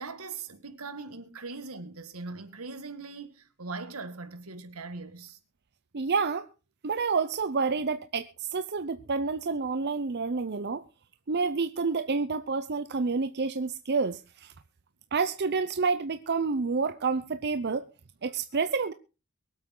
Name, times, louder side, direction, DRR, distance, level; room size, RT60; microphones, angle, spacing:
voice 1, 0.0-5.4, right 3 dB, 80° right, 2.0 m, -40 dB
voice 2, 5.9-6.5 6.8-10.8 11.3-14.5 15.1-17.9 18.2-18.9, right 4 dB, 50° right, 0.7 m, -29 dB
23.0 x 8.2 x 3.9 m
head